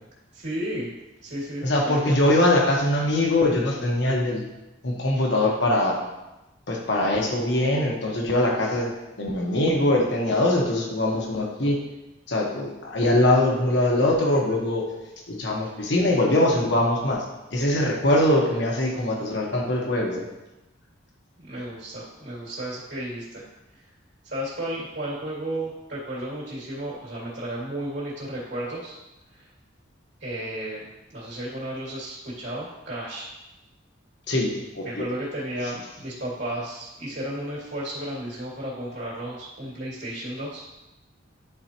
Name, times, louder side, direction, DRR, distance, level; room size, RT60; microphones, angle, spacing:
voice 1, 0.3-0.9 1.2-2.2 21.5-23.4 24.2-29.0 29.4-29.5 30.2-33.3 34.8-40.6, right 1 dB, 65° right, -6 dB, 2.5 m, -33 dB
voice 2, 1.6-4.4 4.8-6.1 6.7-8.9 9.2-11.8 12.3-14.8 15.3-17.2 17.5-20.2 34.3-35.1, left 1 dB, 65° left, -1 dB, 1.2 m, -22 dB
10.5 x 4.0 x 2.9 m, 0.99 s
head